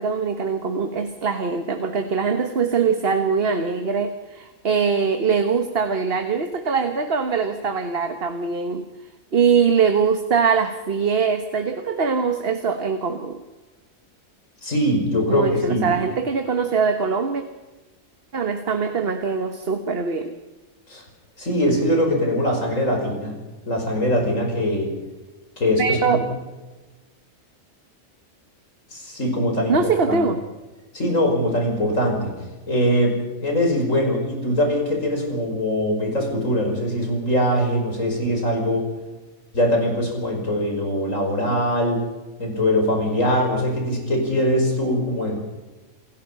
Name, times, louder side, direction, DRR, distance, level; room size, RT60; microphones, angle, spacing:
voice 1, 0.0-8.9 9.3-13.4 15.3-17.4 18.3-20.3 25.8-26.2 29.7-30.4, right 5 dB, 50° right, 7 dB, 1.5 m, -22 dB
voice 2, 14.6-16.0 20.9-21.0 21.4-23.4 23.7-24.9 25.6-26.2 28.9-30.2 30.9-32.3 32.7-38.9 39.5-42.1 42.4-45.4, equal, 70° left, 2 dB, 6.0 m, -22 dB
29.0 x 16.5 x 5.7 m, 1.2 s
omnidirectional pair, 1.4 m